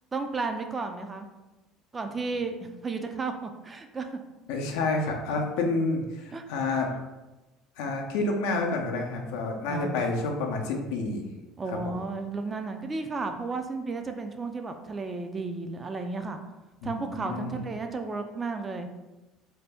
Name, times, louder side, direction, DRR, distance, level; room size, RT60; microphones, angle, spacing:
voice 1, 0.1-1.3 1.9-4.2 6.3-6.4 9.7-9.9 11.6-16.4 16.8-18.9, right 3 dB, 25° right, 6 dB, 0.3 m, -33 dB
voice 2, 4.5-6.9 7.8-11.2 11.7-11.9 16.8-17.6, left 3 dB, 80° left, 2 dB, 0.5 m, -29 dB
2.7 x 2.1 x 3.4 m, 1.1 s
supercardioid pair, 90°, 0 cm